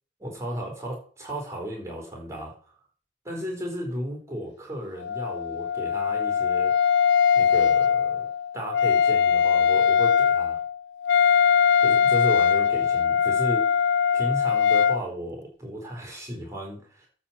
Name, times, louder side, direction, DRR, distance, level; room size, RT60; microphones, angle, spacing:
voice 1, 0.2-2.5 3.2-6.7 7.4-8.3 8.5-10.6 11.8-13.6 14.1-17.1, equal, 15° right, 1 dB, 4.2 m, -34 dB
Wind instrument woodwind instrument, 5.0-15.0, left 7 dB, 65° left, 0.5 m, -21 dB
12.5 x 4.3 x 7.5 m, 0.42 s
head